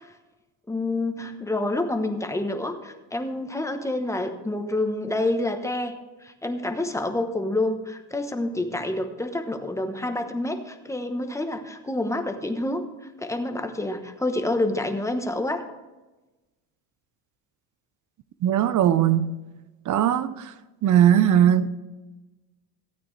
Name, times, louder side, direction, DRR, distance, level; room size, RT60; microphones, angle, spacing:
voice 1, 0.7-6.0 6.2-12.9 13.2-15.6, left 2 dB, 5° left, 1.0 m, -28 dB
voice 2, 18.4-19.3 19.9-20.5 20.8-21.7, right 10 dB, 45° right, 0.8 m, -19 dB
16.0 x 8.9 x 3.3 m
cardioid pair, 125°, 41 cm